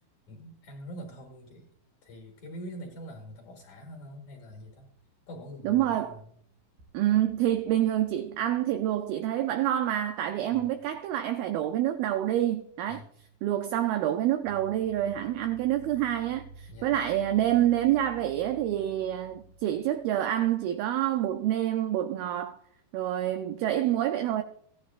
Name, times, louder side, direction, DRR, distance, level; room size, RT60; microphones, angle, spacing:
voice 1, 0.3-1.7 2.0-4.9 5.3-6.3 10.5-10.7 12.9-13.1 16.7-17.0, equal, 55° left, 2.4 m, -44 dB
sound 1, 5.1-6.0 6.3-6.4 6.8-11.2 14.3-21.3, right 2 dB, 60° right, 2.3 m, -52 dB
voice 2, 5.6-6.2 6.9-13.0 13.4-22.6 22.9-24.4, right 12 dB, 85° right, 2.1 m, -27 dB
16.5 x 10.5 x 2.4 m
omnidirectional pair, 4.9 m